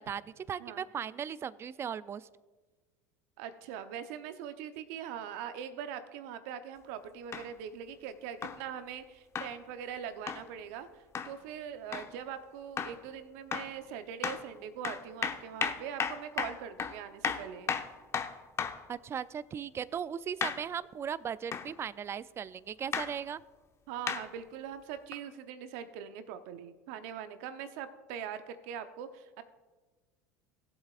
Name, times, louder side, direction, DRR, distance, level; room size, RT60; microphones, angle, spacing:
voice 1, 0.0-2.3 18.9-23.4, right 8 dB, 30° right, 18 dB, 0.4 m, -37 dB
voice 2, 3.4-10.9 11.2-17.7 23.9-29.4, right 8 dB, 65° right, 10 dB, 0.9 m, -42 dB
sound 1, 7.3-7.5 8.4-8.6 9.3-9.5 10.3-10.5 11.1-11.3 11.9-12.1 12.8-13.0 13.5-13.8 14.2-14.4 14.8-18.9 20.4-20.6 21.5-21.7 22.9-23.1 24.1-24.3 25.1-25.2, left 6 dB, 35° left, 0.8 m, -34 dB
17.5 x 7.9 x 2.5 m, 1.3 s
hypercardioid pair, 80°, 8 cm